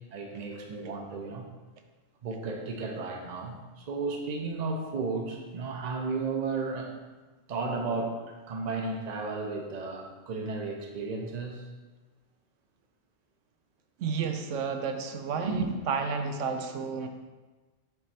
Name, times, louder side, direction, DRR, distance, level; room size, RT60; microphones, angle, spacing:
voice 1, 0.1-1.4 2.2-6.9 7.5-11.6 15.4-15.7, right 3 dB, 40° right, 2 dB, 0.7 m, -33 dB
voice 2, 14.0-17.1, right 5 dB, 80° right, 5 dB, 0.9 m, -31 dB
7.8 x 3.1 x 4.3 m, 1.3 s
omnidirectional pair, 1.3 m